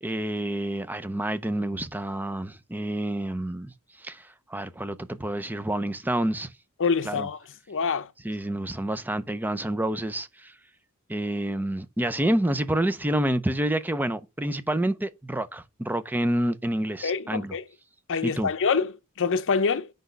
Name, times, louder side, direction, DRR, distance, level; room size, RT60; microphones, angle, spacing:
voice 1, 0.0-3.7 4.0-6.5 7.0-7.3 8.2-10.5 11.1-17.5 18.2-18.5, right 1 dB, 10° right, 0.5 m, -28 dB
voice 2, 6.8-7.4 7.7-8.1 17.0-17.6 18.1-19.9, left 5 dB, 60° left, 0.6 m, -26 dB
6.0 x 5.2 x 6.7 m
head